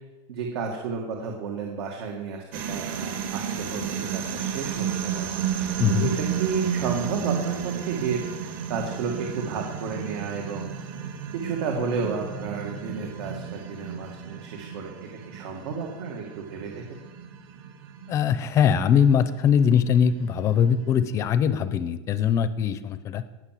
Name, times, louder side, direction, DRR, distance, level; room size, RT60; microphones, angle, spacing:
voice 1, 0.3-5.3 5.6-10.7 11.3-16.8, right 5 dB, 80° right, 1 dB, 2.0 m, -32 dB
sound 1, 2.5-21.0, right 8 dB, 55° right, 2.0 m, -33 dB
voice 2, 5.8-6.1 18.1-23.2, left 8 dB, 20° left, 13 dB, 0.5 m, -21 dB
18.5 x 6.3 x 7.6 m, 1.2 s
supercardioid pair, 180°, 14 cm